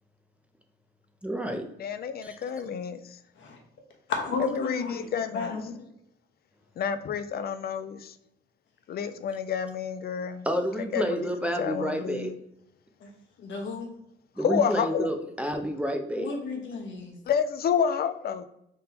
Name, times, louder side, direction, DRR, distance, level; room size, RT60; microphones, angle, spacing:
voice 1, 1.2-1.7 2.2-2.4 10.4-12.3 14.4-16.3, equal, 5° right, 4 dB, 0.5 m, -29 dB
voice 2, 1.8-3.0 4.4-5.5 6.8-8.1 8.9-10.5 10.9-12.3 14.4-15.1 17.3-18.5, left 7 dB, 50° left, 11 dB, 0.4 m, -29 dB
voice 3, 4.1-5.6 13.0-13.1 13.4-13.9 16.1-17.2, left 4 dB, 70° left, 1 dB, 1.1 m, -33 dB
3.7 x 2.7 x 4.1 m, 0.77 s
cardioid pair, 90°, 20 cm